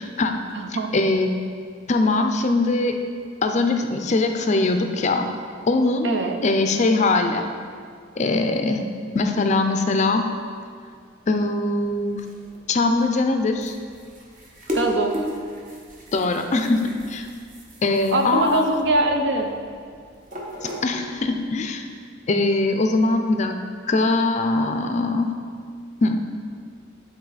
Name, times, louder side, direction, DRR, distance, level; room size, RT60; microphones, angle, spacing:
voice 1, 0.0-0.4 0.9-1.3 1.9-3.0 3.4-5.3 5.7-6.1 6.4-7.5 8.2-8.8 9.1-10.3 11.3-12.3 12.7-13.8 16.1-17.3 17.8-18.7 20.8-21.9 22.3-23.6 23.9-25.3 26.0-26.2, left 2 dB, 35° left, 6 dB, 0.4 m, -21 dB
voice 2, 0.5-1.0 6.0-6.4 14.7-15.1 18.1-19.5, right 2 dB, 60° right, 4 dB, 0.6 m, -22 dB
sound 1, 11.8-21.4, equal, 40° right, 1.0 m, -36 dB
10.0 x 4.1 x 4.0 m, 2.2 s
head